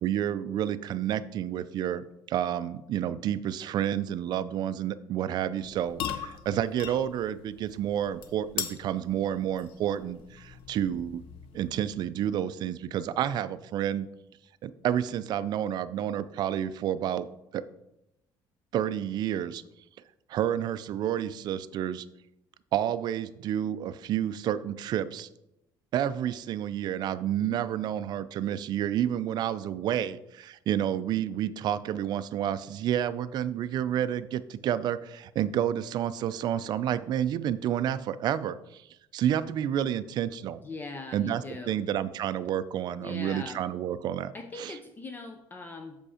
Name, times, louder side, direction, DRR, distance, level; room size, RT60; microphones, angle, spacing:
voice 1, 0.0-11.2 11.5-14.1 14.6-17.3 17.5-17.6 18.7-19.6 20.3-22.1 22.7-25.3 25.9-38.8 39.1-40.6 41.1-41.4 41.7-44.3 44.6-44.7, right 10 dB, 50° right, 14 dB, 0.4 m, -30 dB
sound 1, 5.6-12.0, left 9 dB, 75° left, 0.7 m, -40 dB
voice 2, 40.6-41.8 43.0-43.6 44.3-46.0, left 3 dB, 20° left, 5 dB, 0.5 m, -41 dB
7.1 x 5.2 x 4.9 m, 0.87 s
cardioid pair, 145°, 9 cm